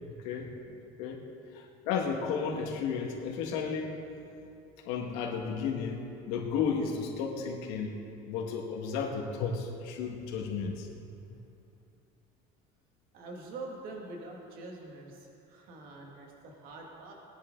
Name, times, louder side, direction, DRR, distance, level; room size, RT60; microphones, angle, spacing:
voice 1, 0.2-1.2 1.5-3.9 4.9-7.9 8.3-10.9, left 6 dB, 85° left, 0 dB, 2.0 m, -33 dB
voice 2, 13.1-17.1, right 2 dB, 55° right, -1 dB, 2.4 m, -45 dB
20.0 x 10.5 x 4.0 m, 2.7 s
cardioid pair, 155°, 17 cm